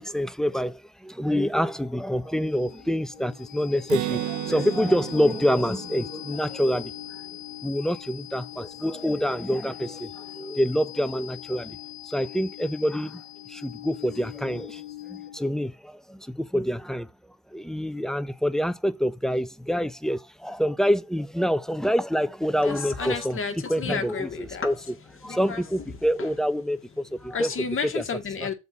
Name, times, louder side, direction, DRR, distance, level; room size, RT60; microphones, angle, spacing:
voice 1, 0.0-7.2 7.6-11.8 12.0-13.2 13.5-17.1 17.5-23.4 23.7-24.7 25.2-27.5 27.8-28.0, equal, ahead, 0.5 m, -26 dB
sound 1, 1.7-15.6, left 14 dB, 70° left, 1.0 m, -42 dB
Acoustic guitar, 3.9-7.6, right 17 dB, 75° right, 0.4 m, -34 dB
voice 2, 22.6-24.7 25.2-25.6 25.9-26.3 27.3-28.5, left 5 dB, 45° left, 1.7 m, -32 dB
6.7 x 4.1 x 6.0 m
cardioid pair, 90°, 30 cm